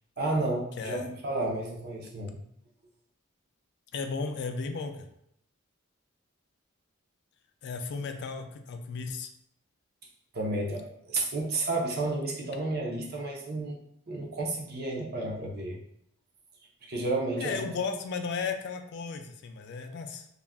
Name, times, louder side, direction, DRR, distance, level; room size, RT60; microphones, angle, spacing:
voice 1, 0.2-2.3 10.3-13.8 14.1-15.8 16.8-17.7, right 2 dB, 45° right, -1 dB, 0.5 m, -31 dB
voice 2, 3.9-5.0 7.6-9.3 17.4-20.3, left 5 dB, 50° left, 6 dB, 0.3 m, -34 dB
2.4 x 2.1 x 3.3 m, 0.73 s
head